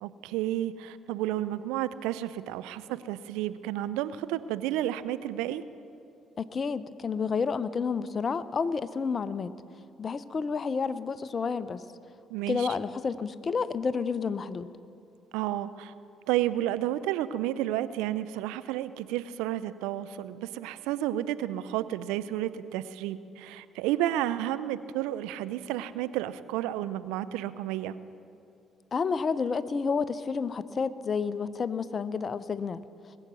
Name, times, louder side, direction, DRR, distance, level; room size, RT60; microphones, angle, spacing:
voice 1, 0.0-5.6 12.3-12.7 15.3-15.9 16.3-28.0, right 13 dB, 75° right, 14 dB, 0.4 m, -31 dB
voice 2, 6.4-9.5 10.0-11.8 12.5-14.7 28.9-32.8, left 5 dB, 45° left, 15 dB, 0.6 m, -30 dB
20.5 x 8.0 x 6.2 m, 2.6 s
hypercardioid pair, 50°, 0 cm